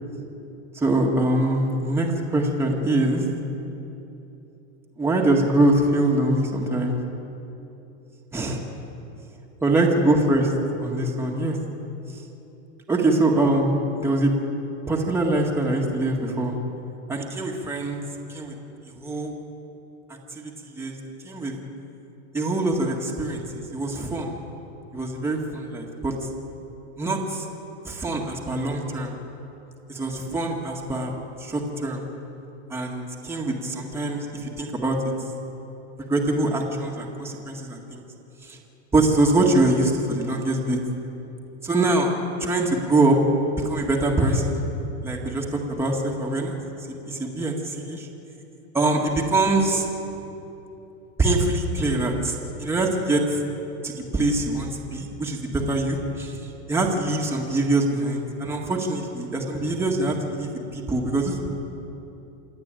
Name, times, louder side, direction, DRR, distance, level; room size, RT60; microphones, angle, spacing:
voice 1, 0.7-3.2 5.0-7.0 8.3-8.6 9.6-10.5 10.8-11.6 12.1-12.2 12.9-14.3 14.9-16.6 17.1-18.0 18.3-18.5 18.9-19.3 20.3-21.0 21.2-21.5 22.3-24.3 24.9-26.1 27.0-27.5 27.8-29.2 29.9-31.1 31.4-32.0 32.7-35.0 36.1-38.0 38.4-38.6 38.9-40.8 41.6-42.1 42.4-43.2 43.6-44.6 45.0-46.5 47.1-48.1 48.7-49.8 51.2-53.4 53.8-56.4 56.7-61.5, right 2 dB, 5° right, -1 dB, 1.9 m, -23 dB
27.5 x 10.5 x 9.0 m, 3.0 s
supercardioid pair, 155°, 35 cm